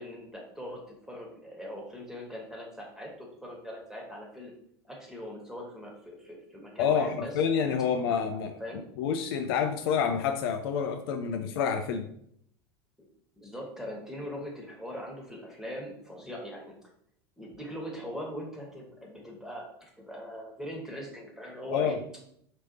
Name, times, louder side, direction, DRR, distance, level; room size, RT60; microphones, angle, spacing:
voice 1, 0.0-4.5 4.8-7.3 8.0-8.2 8.6-8.8 13.3-16.7 17.4-22.0, equal, 5° right, -1 dB, 1.4 m, -41 dB
voice 2, 6.8-8.6 9.0-12.1 21.7-22.0, left 7 dB, 60° left, 6 dB, 0.4 m, -28 dB
5.2 x 3.1 x 2.8 m, 0.68 s
figure-of-eight pair, 80°, 14 cm